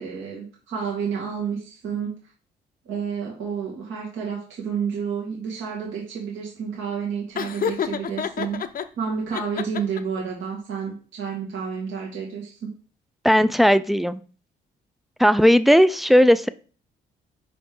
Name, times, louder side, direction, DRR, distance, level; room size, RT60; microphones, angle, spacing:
voice 1, 0.0-2.2 2.9-8.6 9.0-12.7, right 6 dB, 75° right, -3 dB, 2.1 m, -30 dB
Laughter, 7.4-8.9 9.3-10.2, left 8 dB, 45° left, 0.6 m, -28 dB
voice 2, 13.2-14.2 15.2-16.5, equal, ahead, 14 dB, 0.3 m, -16 dB
5.3 x 5.0 x 3.7 m, 0.39 s
cardioid pair, 90°, 20 cm